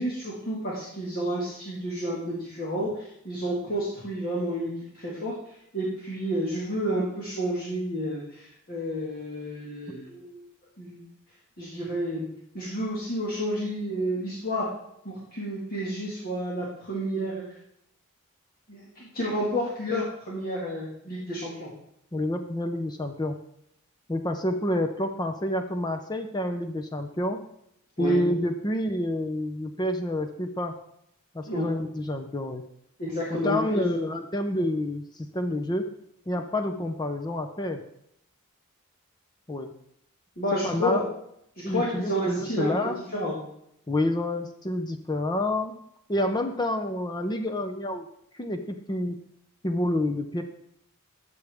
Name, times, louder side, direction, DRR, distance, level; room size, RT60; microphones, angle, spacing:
voice 1, 0.0-5.3 5.7-10.4 10.8-11.1 11.6-12.3 12.5-14.7 15.1-17.4 18.7-21.7 28.0-28.2 31.5-31.7 33.0-34.0 40.4-41.1 41.7-42.7 43.1-43.4, equal, 40° left, -5 dB, 1.9 m, -30 dB
voice 2, 22.1-23.3 24.1-27.4 28.0-30.8 31.3-32.6 33.3-35.8 36.3-37.8 39.5-39.7 40.6-41.1 41.6-43.0 43.9-45.8 46.1-48.1 48.3-49.2 49.6-50.4, left 1 dB, 20° left, 7 dB, 0.6 m, -28 dB
13.0 x 6.9 x 3.5 m, 0.74 s
head